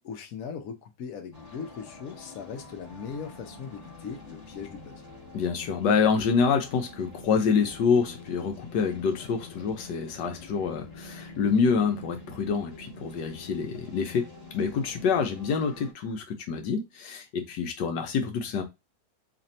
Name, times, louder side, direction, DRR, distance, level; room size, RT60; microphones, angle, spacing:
voice 1, 0.0-5.0, left 6 dB, 60° left, 1.1 m, -39 dB
sound 1, 1.3-15.9, left 3 dB, 25° left, 1.1 m, -46 dB
voice 2, 5.3-14.3 14.5-18.6, left 5 dB, 80° left, 1.3 m, -27 dB
3.3 x 2.6 x 4.1 m
omnidirectional pair, 1.9 m